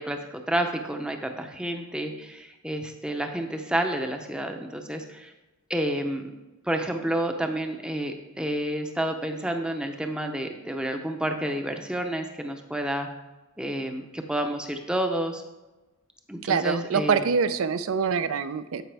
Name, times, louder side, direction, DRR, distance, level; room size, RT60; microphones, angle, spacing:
voice 1, 0.0-5.3 5.7-6.3 6.6-13.1 13.6-15.4 16.3-17.2, right 1 dB, 5° right, 5 dB, 0.6 m, -30 dB
voice 2, 16.4-18.8, right 6 dB, 70° right, 13 dB, 0.4 m, -25 dB
12.5 x 5.2 x 3.4 m, 1.1 s
head